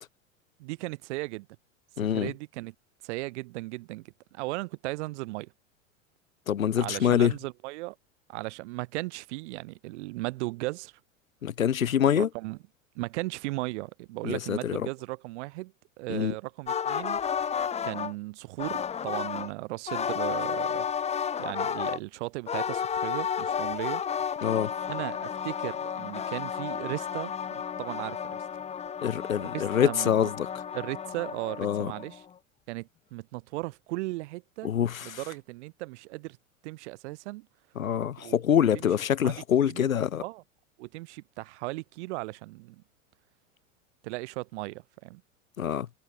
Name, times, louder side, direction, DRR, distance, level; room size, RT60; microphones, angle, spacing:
voice 1, 0.6-1.5 2.0-2.7 3.0-5.5 6.8-7.9 8.3-10.9 12.2-12.6 12.9-17.3 17.8-20.8 21.4-24.0 24.9-28.4 29.5-30.1 30.7-32.2 32.7-34.7 35.0-36.4 36.6-37.5 38.2-38.4 39.2-39.3 39.6-39.9 40.2-40.4 40.8-42.8 44.0-45.2, right 21 dB, 60° right, 2.8 m, -36 dB
voice 2, 2.0-2.3 6.5-7.3 11.4-12.3 14.2-14.9 16.1-16.3 24.4-24.7 29.0-30.5 31.6-31.9 34.6-35.2 37.8-40.2 45.6-45.9, left 9 dB, 85° left, 0.9 m, -25 dB
sound 1, 16.7-18.1 18.6-19.5 19.9-22.0 22.5-32.2, left 7 dB, 15° left, 0.8 m, -32 dB
figure-of-eight pair, 90°, 40 cm